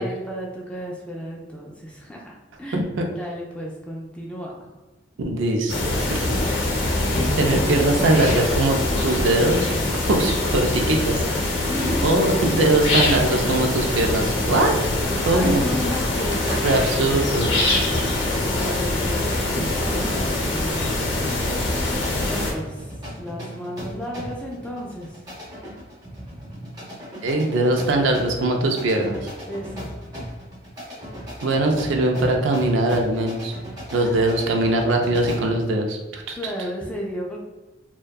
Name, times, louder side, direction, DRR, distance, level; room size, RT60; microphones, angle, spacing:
voice 1, 0.0-4.7 11.6-12.1 15.3-17.2 18.5-21.3 22.2-25.2 29.5-29.9 33.9-34.3 36.3-37.4, equal, 5° left, -3 dB, 0.3 m, -33 dB
voice 2, 2.7-3.0 5.2-6.3 7.4-9.7 10.1-11.2 12.0-14.9 15.2-15.6 16.6-17.5 27.2-29.3 31.4-33.5 33.9-36.5, right 2 dB, 75° right, 2 dB, 0.4 m, -21 dB
sound 1, 5.7-22.5, left 2 dB, 65° left, 0.7 m, -23 dB
sound 2, 15.3-17.5, equal, 55° right, 1.0 m, -39 dB
sound 3, 19.8-35.6, equal, 20° right, 0.7 m, -37 dB
2.6 x 2.2 x 2.2 m, 1.1 s
head